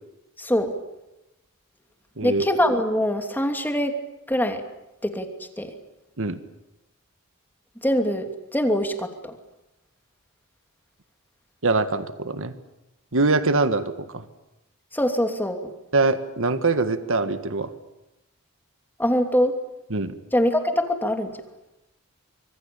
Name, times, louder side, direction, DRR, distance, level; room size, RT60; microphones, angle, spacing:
voice 1, 0.4-0.7 2.2-3.9 4.3-4.6 5.0-5.3 5.6-5.7 7.8-9.3 14.9-15.7 19.0-19.5 20.3-21.3, equal, 10° left, 5 dB, 2.8 m, -23 dB
voice 2, 11.6-12.6 13.1-14.2 15.9-17.7 19.9-20.2, right 3 dB, 65° right, 10 dB, 1.7 m, -23 dB
25.5 x 22.5 x 8.8 m, 0.95 s
head